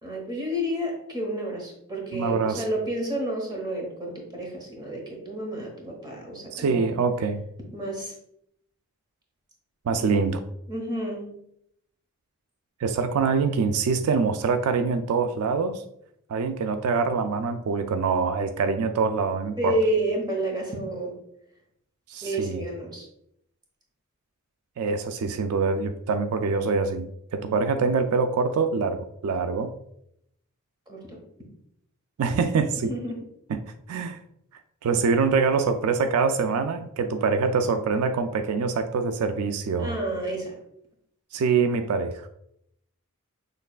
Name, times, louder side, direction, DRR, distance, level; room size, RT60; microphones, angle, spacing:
voice 1, 0.0-6.9 7.7-8.1 10.0-10.3 10.7-11.4 19.6-21.1 22.2-23.0 30.9-31.2 32.9-33.2 39.8-40.5, right 1 dB, 20° right, 0 dB, 1.1 m, -30 dB
voice 2, 2.1-2.6 6.5-7.4 9.9-10.4 12.8-15.8 16.3-19.8 22.1-22.6 24.8-29.7 32.2-32.9 33.5-33.6 33.9-34.2 34.8-40.0 41.3-42.3, right 4 dB, 80° right, 9 dB, 0.3 m, -24 dB
6.5 x 3.1 x 2.3 m, 0.74 s
head